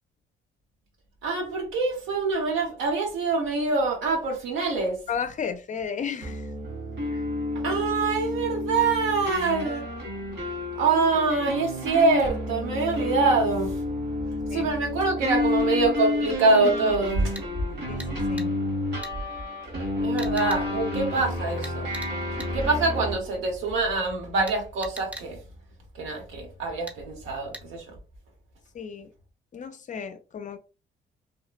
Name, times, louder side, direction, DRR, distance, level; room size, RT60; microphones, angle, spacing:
voice 1, 1.2-5.0 7.5-9.8 10.8-13.7 14.5-17.3 20.0-21.9 22.5-25.4 25.9-27.8, right 3 dB, 85° right, 1.1 m, -25 dB
voice 2, 5.1-6.5 7.1-7.2 14.5-14.7 17.9-18.6 28.7-29.1 29.5-30.6, left 7 dB, 40° left, 0.4 m, -34 dB
sound 1, 6.2-23.1, left 2 dB, 55° right, 1.2 m, -30 dB
sound 2, 17.3-17.5 18.0-18.1 18.4-18.5 19.0-19.1 20.2-20.6 21.6-22.1 22.4-22.5 24.5-25.3 26.9-27.0 27.5-27.6, right 1 dB, 5° right, 0.6 m, -40 dB
2.9 x 2.0 x 2.5 m
cardioid pair, 90°, 20 cm